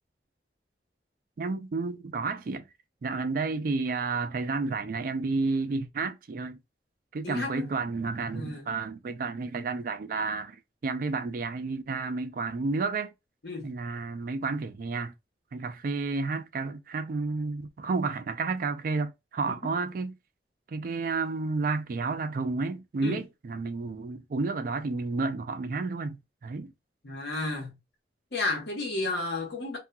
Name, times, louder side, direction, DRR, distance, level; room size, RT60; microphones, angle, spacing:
voice 1, 1.4-2.6 3.0-6.6 7.1-10.6 10.8-13.1 13.6-15.1 15.5-20.1 20.7-26.7, right 3 dB, 50° right, 0.4 m, -31 dB
voice 2, 7.2-7.7 8.3-8.7 13.4-13.7 23.0-23.2 27.0-27.8 28.3-29.8, left 2 dB, 70° left, 1.1 m, -32 dB
2.7 x 2.4 x 2.2 m
head